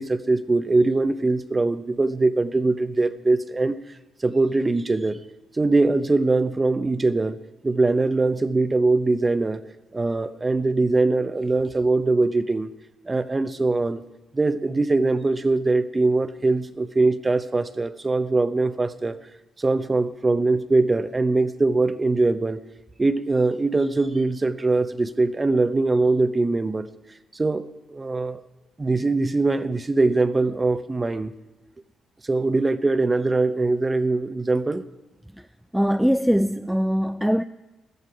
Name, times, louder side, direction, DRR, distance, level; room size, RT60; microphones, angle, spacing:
voice 1, 0.0-3.8 4.2-5.2 5.5-7.4 7.6-9.6 9.9-12.7 13.1-14.0 14.3-19.2 19.6-22.6 23.0-26.9 27.3-28.4 28.8-31.3 32.2-34.8, right 3 dB, 20° right, 0.8 m, -22 dB
voice 2, 35.7-37.4, equal, ahead, 0.3 m, -21 dB
14.5 x 13.5 x 4.8 m
cardioid pair, 90°, 0 cm